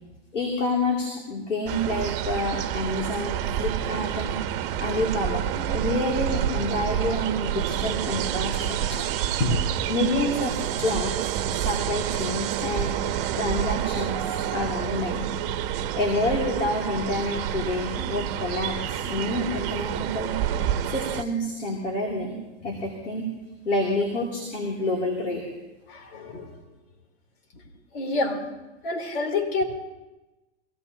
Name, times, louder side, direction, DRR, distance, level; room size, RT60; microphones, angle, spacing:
voice 1, 0.3-4.3 4.8-9.0 9.9-11.2 11.6-13.0 13.3-15.3 15.9-20.3 20.9-23.3 23.6-25.4, left 1 dB, 90° left, -1 dB, 2.8 m, -28 dB
sound 1, 1.6-21.2, right 10 dB, 50° right, 1.0 m, -28 dB
voice 2, 25.9-26.6 27.5-27.6 27.9-28.4 28.8-29.6, left 2 dB, 60° left, 3 dB, 3.4 m, -27 dB
22.5 x 16.5 x 2.8 m, 1.1 s
hypercardioid pair, 115°, 35 cm